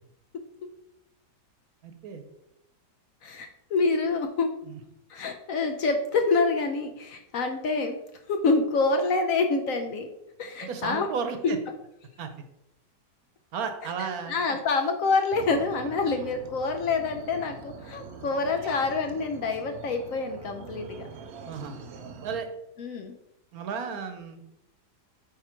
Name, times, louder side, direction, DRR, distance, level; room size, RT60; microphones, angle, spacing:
voice 1, 1.8-2.2 4.7-4.8 10.6-11.6 12.2-12.3 13.5-14.6 21.4-21.7 22.2-22.5 23.5-24.5, right 6 dB, 65° right, 7 dB, 1.2 m, -34 dB
voice 2, 3.2-4.5 5.1-8.0 8.3-10.1 10.4-11.1 11.4-11.6 14.0-21.1 22.8-23.1, left 3 dB, 65° left, 5 dB, 0.9 m, -27 dB
sound 1, 15.3-22.4, right 4 dB, 80° right, 0.5 m, -43 dB
8.7 x 3.2 x 4.4 m, 0.84 s
omnidirectional pair, 1.8 m